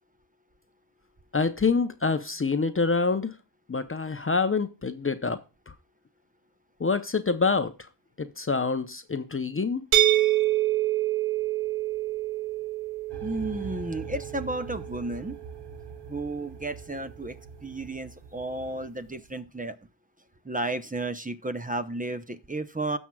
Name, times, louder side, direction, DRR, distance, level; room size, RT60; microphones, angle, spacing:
voice 1, 1.3-3.3 3.7-5.4 6.8-7.7 8.2-9.8, left 4 dB, 25° left, 0.7 m, -26 dB
sound 1, 9.9-15.7, right 15 dB, 80° right, 0.7 m, -27 dB
sound 2, 13.1-18.9, right 4 dB, 55° right, 1.4 m, -44 dB
voice 2, 13.2-15.4 16.1-19.8 20.4-23.0, right 2 dB, 15° right, 0.8 m, -33 dB
16.5 x 6.1 x 2.3 m
cardioid pair, 50°, 48 cm